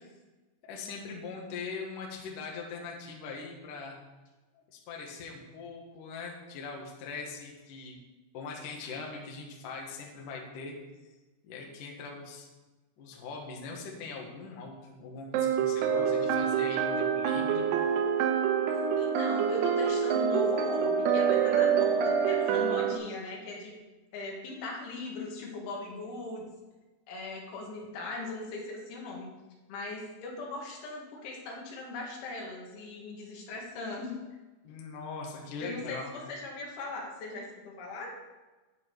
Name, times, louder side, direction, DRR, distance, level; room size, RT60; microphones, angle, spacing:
voice 1, 0.7-4.0 4.5-8.0 8.3-10.8 11.4-12.5 13.0-17.7 34.6-36.2, left 4 dB, 55° left, 0 dB, 2.5 m, -41 dB
sound 1, 15.3-23.0, right 7 dB, 90° right, 3.4 m, -26 dB
voice 2, 19.0-23.8 24.1-26.5 27.1-29.3 29.7-34.1 35.6-38.1, left 2 dB, 75° left, -1 dB, 4.1 m, -39 dB
10.5 x 9.1 x 4.6 m, 1.2 s
omnidirectional pair, 5.6 m